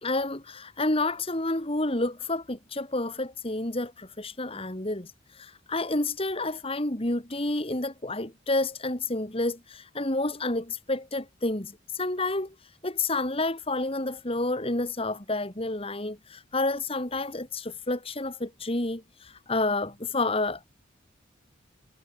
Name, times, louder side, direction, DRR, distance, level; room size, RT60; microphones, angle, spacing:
voice 1, 0.0-12.5 12.8-20.6, left 2 dB, 30° left, 2.4 m, -29 dB
head